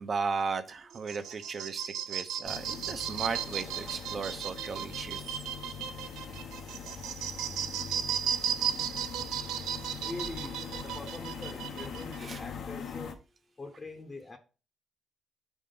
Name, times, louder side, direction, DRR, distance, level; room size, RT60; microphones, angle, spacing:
voice 1, 0.0-5.2 12.2-12.4, right 5 dB, 45° right, 0.8 m, -35 dB
sound 1, 0.9-12.2, right 9 dB, 80° right, 0.6 m, -35 dB
sound 2, 2.4-13.1, left 6 dB, 65° left, 0.9 m, -42 dB
voice 2, 10.0-13.2 13.6-14.4, left 2 dB, 30° left, 0.9 m, -43 dB
4.8 x 3.6 x 5.5 m
cardioid pair, 90°, 0 cm